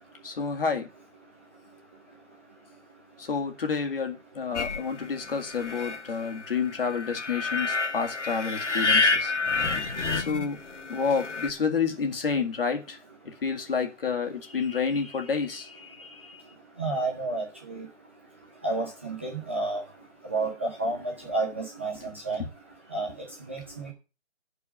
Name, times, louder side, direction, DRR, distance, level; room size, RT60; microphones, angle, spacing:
voice 1, 0.2-0.9 3.2-9.3 10.1-10.6 10.9-13.0 13.3-16.4 22.0-22.1, left 5 dB, 50° left, 2.1 m, -29 dB
sound 1, 4.5-11.5, left 3 dB, 75° left, 1.5 m, -29 dB
voice 2, 16.8-17.4 17.7-17.8 18.6-19.8 20.3-21.0 21.3-21.9 22.3-22.4 22.9-23.1 23.5-23.6, right 2 dB, 10° right, 0.6 m, -29 dB
10.5 x 4.8 x 7.3 m
hypercardioid pair, 165°, 35 cm